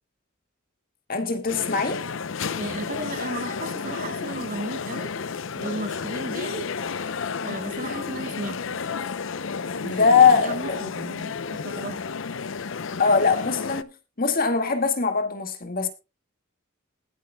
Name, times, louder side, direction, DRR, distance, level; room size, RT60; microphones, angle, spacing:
voice 1, 1.1-2.0 9.9-10.9 13.0-15.9, left 5 dB, 45° left, 1.9 m, -21 dB
sound 1, 1.5-13.8, left 5 dB, 65° left, 0.6 m, -32 dB
voice 2, 2.6-5.1 5.6-6.7 7.4-8.8 9.8-10.0 10.3-12.0, right 2 dB, 40° right, 1.2 m, -35 dB
20.5 x 8.2 x 2.3 m
head